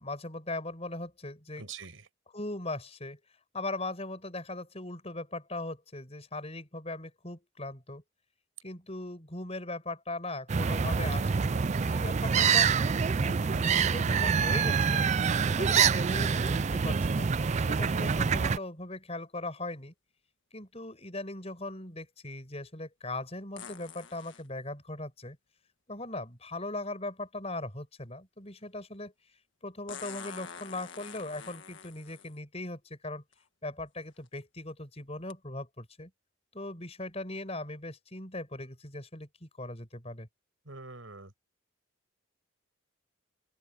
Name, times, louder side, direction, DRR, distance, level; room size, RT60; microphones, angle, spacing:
voice 1, 0.0-1.6 2.3-3.2 3.5-8.0 8.6-12.7 13.2-15.0 15.6-19.9 20.5-25.4 25.9-29.1 29.6-33.2 33.6-36.1 36.5-40.3, left 2 dB, 30° left, 5.8 m, -39 dB
voice 2, 1.6-2.1 40.6-41.3, right 4 dB, 70° right, 5.7 m, -45 dB
sound 1, 10.5-18.6, right 6 dB, 35° right, 0.4 m, -26 dB
sound 2, 23.6-24.5 26.5-26.6 29.9-32.4 33.3-33.4 34.1-34.3 35.3-35.4, left 6 dB, 60° left, 1.7 m, -46 dB
open air
head